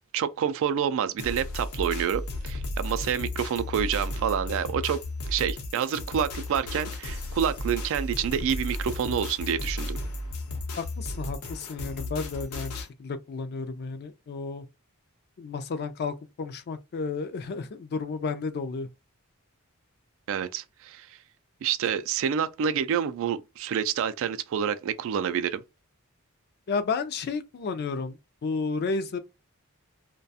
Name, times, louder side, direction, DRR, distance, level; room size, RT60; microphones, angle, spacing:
voice 1, 0.1-5.0 5.3-10.0 20.3-21.1 21.6-25.6, right 8 dB, 65° right, 0.3 m, -28 dB
sound 1, 1.2-12.9, left 1 dB, 85° left, 0.7 m, -34 dB
voice 2, 10.8-14.6 15.4-18.9 26.7-28.2 28.4-29.2, left 4 dB, 45° left, 0.4 m, -32 dB
2.3 x 2.2 x 2.6 m
head